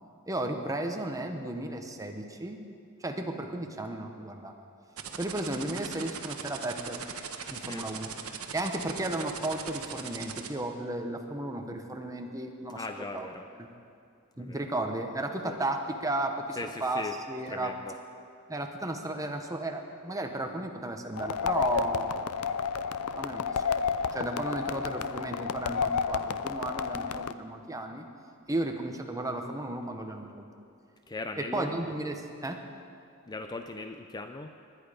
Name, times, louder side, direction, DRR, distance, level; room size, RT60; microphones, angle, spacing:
voice 1, 0.3-2.6 3.0-4.5 5.2-7.0 7.5-8.1 8.5-12.8 13.1-13.3 13.6-13.7 14.4-17.7 18.5-22.5 23.2-23.8 24.1-28.0 28.5-30.5 31.4-32.7, right 1 dB, 15° right, 4 dB, 1.0 m, -34 dB
sound 1, 5.0-10.5, right 7 dB, 75° right, 1.1 m, -39 dB
voice 2, 12.7-13.5 14.4-14.6 15.4-15.6 16.5-17.2 17.5-18.0 31.1-31.8 33.3-34.5, left 3 dB, 20° left, 6 dB, 0.4 m, -39 dB
sound 2, 21.2-27.3, left 6 dB, 80° left, 0.5 m, -31 dB
19.5 x 10.5 x 5.1 m, 2.4 s
head